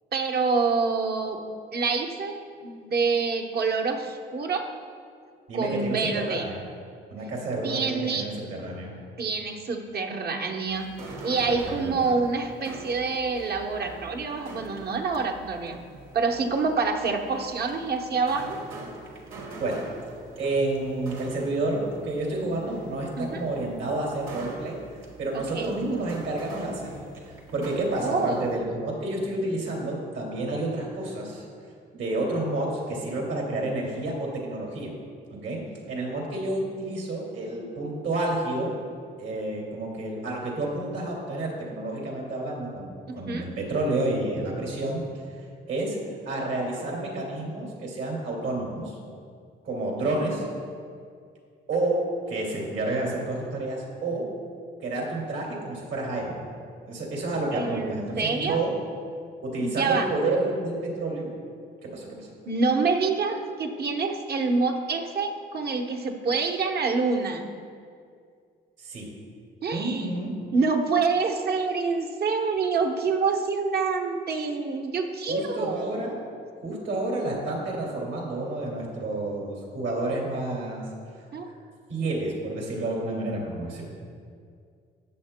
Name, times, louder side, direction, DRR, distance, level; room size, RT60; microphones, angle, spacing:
voice 1, 0.1-1.4 1.7-4.7 5.5-6.5 7.6-8.3 9.2-10.9 11.2-15.8 16.1-18.6 23.2-23.4 25.3-25.7 28.0-28.6 43.1-43.4 57.5-58.6 59.6-60.1 62.5-67.5 69.6-70.1 70.5-76.2 81.3-81.5, right 4 dB, 55° right, 3 dB, 1.0 m, -27 dB
voice 2, 5.5-6.6 7.1-8.9 11.3-12.2 19.6-19.8 20.4-24.8 25.2-26.9 27.5-31.5 31.9-34.9 35.3-35.6 35.9-38.7 39.2-45.0 45.7-46.0 46.3-49.0 49.6-50.5 51.7-52.0 52.3-54.2 54.8-58.7 59.4-61.3 61.8-62.3 68.8-69.1 69.7-70.3 75.3-76.1 76.6-80.8 81.9-83.8, right 2 dB, 70° right, -2 dB, 2.3 m, -30 dB
sound 1, 10.7-28.6, right 2 dB, 90° right, 1.5 m, -44 dB
14.0 x 8.5 x 2.2 m, 2.3 s
cardioid pair, 90°, 20 cm